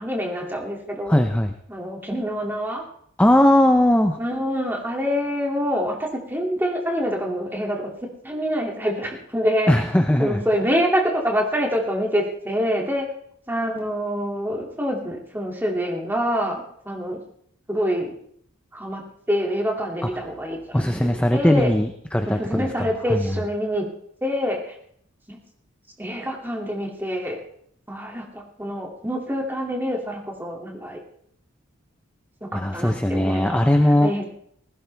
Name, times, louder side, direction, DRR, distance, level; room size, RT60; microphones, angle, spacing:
voice 1, 0.0-1.2 1.7-2.8 4.2-7.9 8.2-9.7 10.2-13.1 13.5-17.2 17.7-18.1 18.7-21.7 22.3-23.9 24.2-24.8 25.3-25.4 26.0-27.4 27.9-31.0 32.4-33.7 34.0-34.3, equal, 10° right, 0 dB, 2.6 m, -26 dB
voice 2, 1.1-1.5 3.2-4.2 9.7-10.4 20.7-23.3 32.5-34.1, left 1 dB, 5° left, 5 dB, 0.7 m, -19 dB
19.5 x 16.0 x 3.5 m, 0.65 s
head